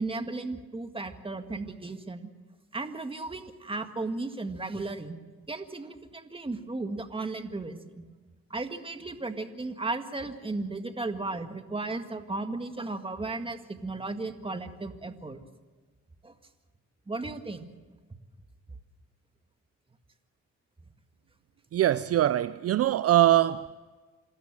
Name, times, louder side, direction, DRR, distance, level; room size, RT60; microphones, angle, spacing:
voice 1, 0.0-2.3 2.7-5.2 5.5-8.0 8.5-15.4 16.2-16.3 17.1-17.7, right 3 dB, 15° right, 1.9 m, -35 dB
voice 2, 21.7-23.7, right 13 dB, 50° right, 0.5 m, -23 dB
27.5 x 13.5 x 7.5 m
cardioid pair, 90°, 30 cm